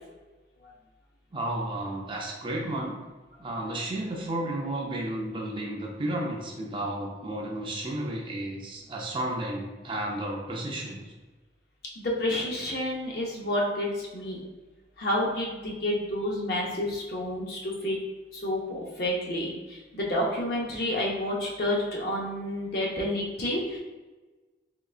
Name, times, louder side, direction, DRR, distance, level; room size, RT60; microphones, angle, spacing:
voice 1, 1.3-3.0 3.4-11.1, right 1 dB, 25° right, -1 dB, 0.4 m, -32 dB
voice 2, 12.0-14.4 15.0-18.0 18.3-23.8, left 1 dB, 50° left, -2 dB, 0.6 m, -29 dB
3.8 x 3.1 x 2.4 m, 1.2 s
head